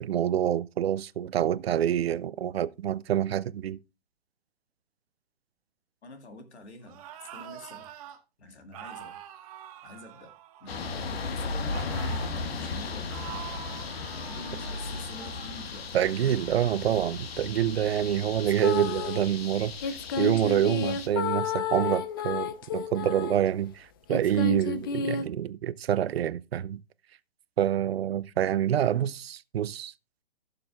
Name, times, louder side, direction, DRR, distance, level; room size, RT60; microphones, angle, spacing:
voice 1, 0.0-3.8 15.9-26.8 27.6-29.9, right 10 dB, 70° right, 0.6 m, -27 dB
voice 2, 6.0-7.9 8.4-9.2 9.8-13.2 14.3-16.0 16.2-16.5, left 2 dB, 85° left, 2.2 m, -47 dB
sound 1, 6.8-8.2 8.7-11.0 11.7-12.4 13.1-15.6, right 11 dB, 35° right, 1.1 m, -45 dB
sound 2, 10.7-21.1, left 4 dB, 65° left, 1.6 m, -36 dB
sound 3, 18.5-19.2 19.8-23.5 24.1-25.2, left 6 dB, 20° left, 0.4 m, -31 dB
15.5 x 6.8 x 2.4 m
hypercardioid pair, 145°, 32 cm